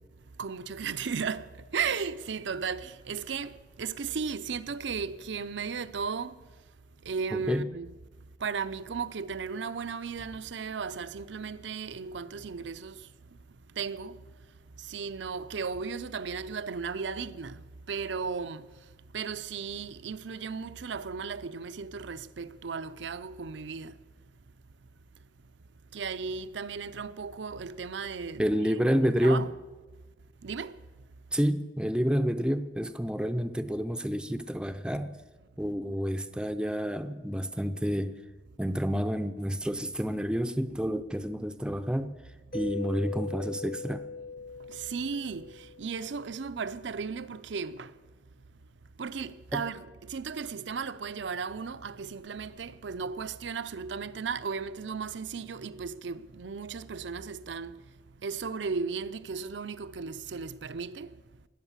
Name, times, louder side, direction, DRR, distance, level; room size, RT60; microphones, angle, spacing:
voice 1, 0.4-6.4 7.1-7.9 8.4-13.0 13.8-14.2 14.8-18.7 19.1-23.9 25.9-29.5 30.4-30.8 44.7-47.9 49.0-57.7 58.2-61.2, right 5 dB, 80° right, 0.6 m, -35 dB
voice 2, 7.3-7.7 28.4-29.5 31.3-35.1 35.6-38.1 38.6-42.1 42.5-44.0 49.5-49.6, equal, 5° right, 0.5 m, -29 dB
Mallet percussion, 42.5-46.3, left 3 dB, 50° left, 1.0 m, -40 dB
19.0 x 8.1 x 7.2 m
head